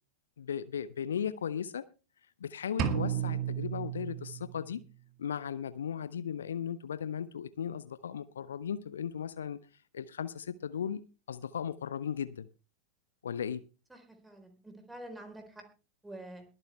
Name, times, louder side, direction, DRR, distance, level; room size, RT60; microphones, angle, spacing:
voice 1, 0.4-1.9 2.4-4.8 5.2-9.6 9.9-11.0 11.3-12.5 13.2-13.6, left 8 dB, 65° left, 0.7 m, -36 dB
sound 1, 2.8-4.8, right 9 dB, 40° right, 1.8 m, -33 dB
voice 2, 13.9-15.6 16.0-16.4, right 1 dB, 5° right, 3.9 m, -47 dB
22.0 x 8.9 x 3.3 m
figure-of-eight pair, 90°, 0 cm